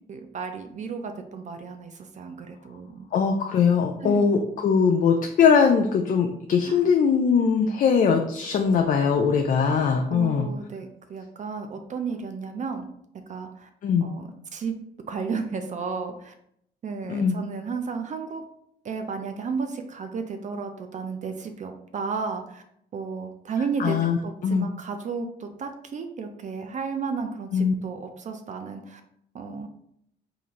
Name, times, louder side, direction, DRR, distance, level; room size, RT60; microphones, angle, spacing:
voice 1, 0.1-3.1 4.0-4.2 6.6-6.8 10.1-12.9 13.3-13.7 14.0-14.8 15.1-16.3 16.8-18.4 18.8-22.6 22.9-24.0 24.2-29.0 29.3-29.7, right 5 dB, 40° right, 6 dB, 0.4 m, -33 dB
voice 2, 3.1-10.5 13.8-14.1 17.1-17.4 23.8-24.7 27.5-27.7, left 6 dB, 45° left, 4 dB, 0.4 m, -21 dB
3.8 x 2.5 x 2.9 m, 0.72 s
cardioid pair, 100°, 19 cm